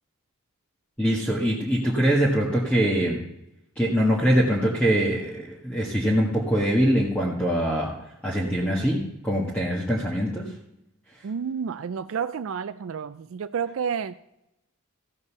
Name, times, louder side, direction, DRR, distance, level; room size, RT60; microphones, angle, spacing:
voice 1, 1.0-3.2 3.7-7.9 8.2-10.5, equal, 5° left, -5 dB, 1.6 m, -23 dB
voice 2, 11.2-14.2, right 7 dB, 65° right, 13 dB, 0.4 m, -30 dB
15.0 x 5.4 x 7.0 m, 0.86 s
head